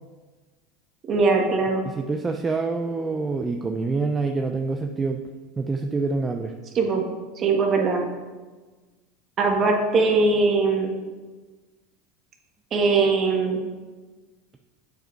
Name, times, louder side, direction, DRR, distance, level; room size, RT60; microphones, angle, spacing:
voice 1, 1.1-1.8 6.7-7.1 7.4-8.0 9.4-10.9 12.7-13.6, right 4 dB, 40° right, 2 dB, 1.5 m, -21 dB
voice 2, 1.8-5.2 5.6-6.6, right 3 dB, 20° right, 4 dB, 0.5 m, -26 dB
7.8 x 5.2 x 4.5 m, 1.3 s
supercardioid pair, 105°, 0 cm